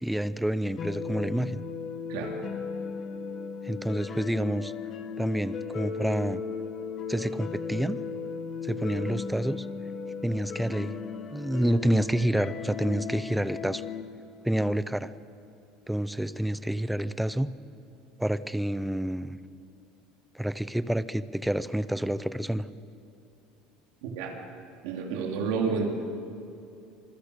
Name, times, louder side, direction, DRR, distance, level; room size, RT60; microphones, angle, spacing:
voice 1, 0.0-1.6 3.6-4.7 5.2-6.4 7.1-8.0 8.6-9.7 10.2-10.9 11.3-13.8 14.4-15.1 15.9-17.5 18.2-19.4 20.3-22.6, right 1 dB, ahead, 15 dB, 0.5 m, -28 dB
sound 1, 0.8-14.0, left 6 dB, 25° left, 1.3 m, -36 dB
voice 2, 24.0-24.4 24.8-25.9, right 5 dB, 70° right, 1 dB, 3.4 m, -30 dB
27.0 x 21.5 x 6.7 m, 2.8 s
cardioid pair, 180°, 0 cm